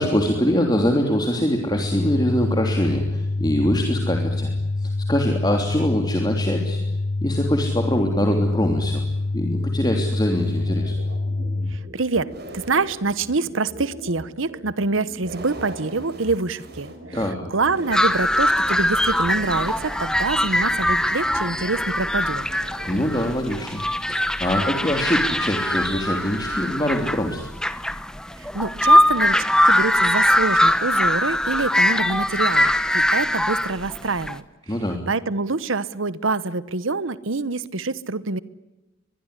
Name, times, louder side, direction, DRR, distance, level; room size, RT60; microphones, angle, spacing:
voice 1, 0.0-4.5 4.8-6.8 7.2-9.0 9.3-10.9 17.1-17.4 22.8-23.8 24.1-27.5 34.7-35.0, equal, 20° left, 3 dB, 3.1 m, -23 dB
sound 1, 1.7-11.7, left 2 dB, 35° left, 2.0 m, -26 dB
sound 2, 10.3-23.1, right 1 dB, 50° right, 5.0 m, -40 dB
voice 2, 11.7-17.2 17.5-22.4 28.4-29.4 29.7-34.4 35.1-38.4, right 3 dB, 80° right, 17 dB, 1.1 m, -26 dB
sound 3, 17.9-34.4, left 1 dB, 5° left, 1.1 m, -21 dB
24.0 x 22.0 x 9.9 m, 1.0 s
head